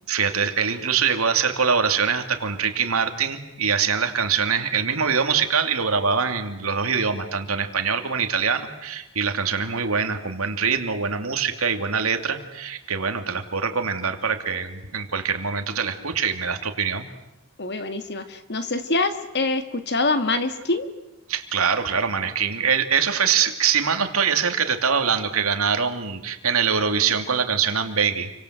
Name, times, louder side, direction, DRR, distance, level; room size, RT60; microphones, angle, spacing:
voice 1, 0.1-17.1 21.3-28.3, right 6 dB, 85° right, 6 dB, 2.8 m, -23 dB
voice 2, 17.6-20.9, left 3 dB, 55° left, 9 dB, 2.1 m, -25 dB
29.5 x 24.5 x 8.1 m, 0.90 s
head